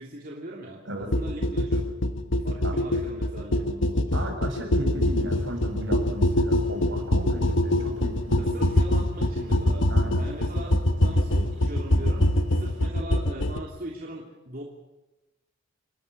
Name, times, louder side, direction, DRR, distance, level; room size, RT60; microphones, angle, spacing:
voice 1, 0.0-1.9 2.4-4.3 8.3-14.6, right 1 dB, 45° right, -2 dB, 3.1 m, -40 dB
sound 1, 1.1-13.6, left 1 dB, 70° left, 1.3 m, -24 dB
voice 2, 4.1-8.4 9.9-10.2, equal, 70° right, 3 dB, 6.4 m, -35 dB
sound 2, 4.9-12.9, equal, 90° right, 5.1 m, -44 dB
29.0 x 12.0 x 9.8 m, 1.0 s
head